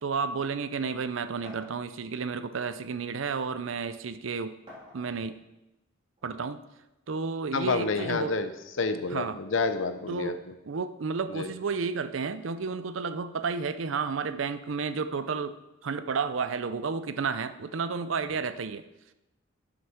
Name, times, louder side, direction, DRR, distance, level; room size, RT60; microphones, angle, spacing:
voice 1, 0.0-4.6 4.9-5.4 6.2-6.6 7.1-8.3 9.1-9.4 10.1-10.4 10.6-15.5 15.8-18.8, right 5 dB, 80° right, 12 dB, 0.6 m, -31 dB
sound 1, 1.4-1.7 2.8-2.9 3.4-3.5 4.7-5.3 6.1-6.2 8.0-8.4, left 1 dB, 30° right, 3.2 m, -47 dB
voice 2, 7.5-8.5 8.8-10.3 11.3-11.5, left 4 dB, 75° left, 9 dB, 0.8 m, -29 dB
7.9 x 6.6 x 5.8 m, 0.97 s
head